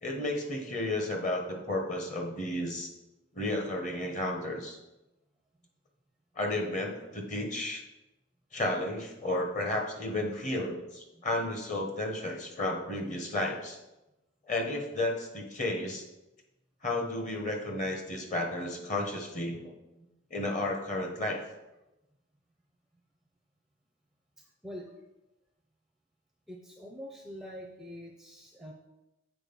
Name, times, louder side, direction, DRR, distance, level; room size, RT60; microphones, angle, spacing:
voice 1, 0.0-2.9 3.3-4.8 6.3-7.8 8.5-13.8 14.5-16.0 16.8-19.7 20.3-21.4, left 1 dB, 35° left, 2 dB, 1.2 m, -32 dB
voice 2, 24.4-25.0 26.5-28.7, equal, ahead, 1 dB, 0.5 m, -45 dB
7.6 x 4.4 x 5.3 m, 0.96 s
head